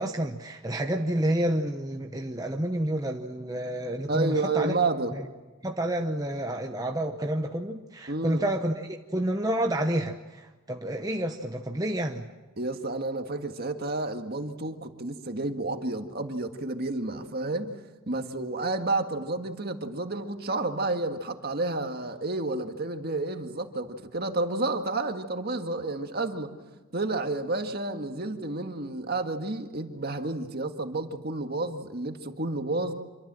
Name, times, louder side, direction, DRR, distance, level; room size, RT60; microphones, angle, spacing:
voice 1, 0.0-4.8 5.1-5.2 5.6-12.3, right 1 dB, 15° right, 3 dB, 0.9 m, -29 dB
voice 2, 4.1-5.2 8.1-8.4 12.6-17.7 18.1-26.5 26.9-32.9, right 2 dB, 45° right, 5 dB, 1.8 m, -30 dB
26.5 x 24.0 x 7.7 m, 1.2 s
head